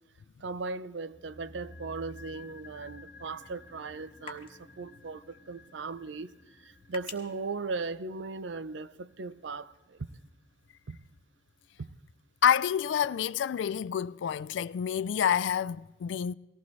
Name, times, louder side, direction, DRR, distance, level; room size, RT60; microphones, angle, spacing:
voice 1, 0.4-6.3 6.6-10.1 10.9-11.0 11.8-11.9, right 4 dB, 75° right, 0.5 m, -38 dB
sound 1, 1.1-11.4 11.6-11.7, left 2 dB, 45° left, 1.4 m, -53 dB
sound 2, 1.9-8.6, left 5 dB, 30° left, 1.3 m, -53 dB
voice 2, 12.4-16.3, left 8 dB, 80° left, 0.3 m, -28 dB
19.0 x 15.5 x 3.1 m
head